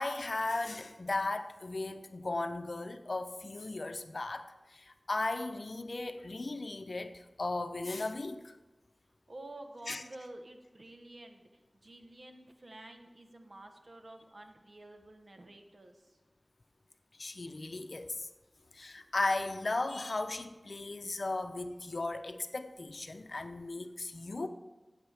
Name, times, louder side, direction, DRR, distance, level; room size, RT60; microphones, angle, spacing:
voice 1, 0.0-8.5 9.9-10.0 17.2-18.3 18.7-24.5, left 2 dB, 70° left, 8 dB, 0.6 m, -36 dB
voice 2, 9.3-16.2, right 1 dB, 60° right, 5 dB, 1.1 m, -50 dB
14.5 x 8.0 x 3.4 m, 1.2 s
wide cardioid pair, 60°, 0 cm